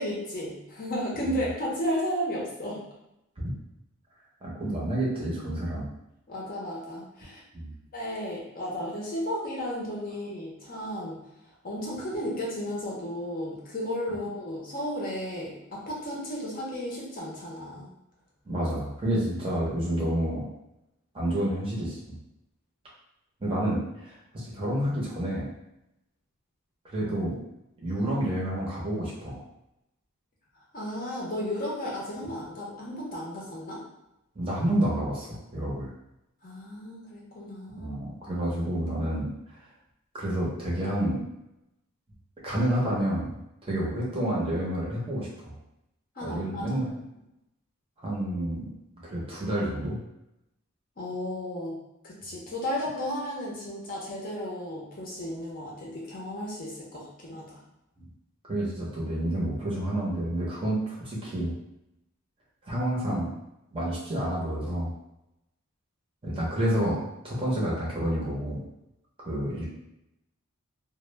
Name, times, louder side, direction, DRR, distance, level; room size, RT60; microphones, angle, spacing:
voice 1, 0.0-2.8 6.3-7.4 7.9-11.2 11.6-17.9 30.7-33.8 36.4-37.9 46.2-46.7 51.0-51.8 52.0-57.6, equal, 40° left, -5 dB, 0.6 m, -34 dB
voice 2, 4.4-5.9 7.5-7.7 18.5-20.4 21.1-22.0 23.4-25.5 26.9-27.4 27.8-29.4 34.4-35.9 37.8-39.3 40.1-41.2 42.4-45.6 46.2-46.9 48.0-48.7 49.0-50.0 58.4-61.5 62.7-63.3 63.7-64.9 66.2-68.6 69.2-69.6, right 1 dB, 25° right, -6 dB, 0.6 m, -29 dB
2.1 x 2.0 x 3.1 m, 0.87 s
head